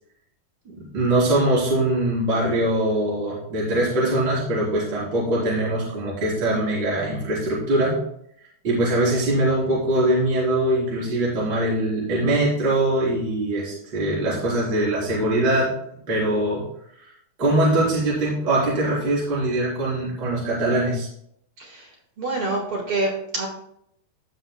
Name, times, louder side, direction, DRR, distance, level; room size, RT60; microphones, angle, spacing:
voice 1, 0.7-8.0 8.6-15.7 16.1-16.6 17.4-21.1, right 1 dB, 30° right, -7 dB, 4.1 m, -22 dB
voice 2, 22.2-23.5, right 2 dB, 45° right, -1 dB, 1.9 m, -26 dB
16.0 x 6.0 x 2.2 m, 0.72 s
omnidirectional pair, 4.2 m